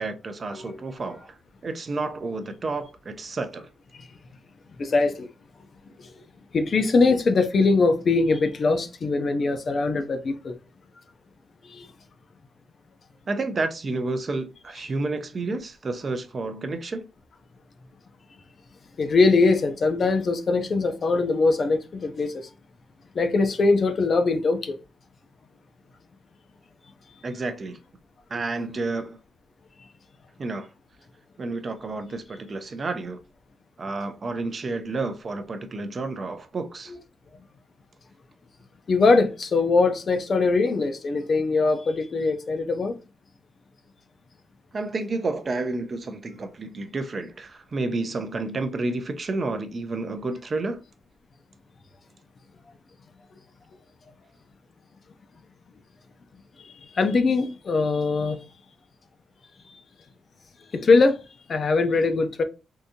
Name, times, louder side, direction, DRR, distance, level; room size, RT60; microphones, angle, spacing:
voice 1, 0.0-1.4 1.6-3.7 13.3-17.1 27.2-27.8 28.3-29.2 30.4-30.7 31.4-33.2 33.8-36.9 44.7-50.8, right 3 dB, 30° right, 0.4 m, -30 dB
voice 2, 0.5-0.8 3.9-4.1 4.8-5.3 6.1-6.2 6.5-10.5 11.7-11.9 19.0-22.5 23.1-24.8 38.9-43.0 56.6-58.4 60.7-61.2 61.5-62.4, left 3 dB, 40° left, 0.4 m, -22 dB
3.6 x 2.6 x 2.7 m
wide cardioid pair, 160°, 0 cm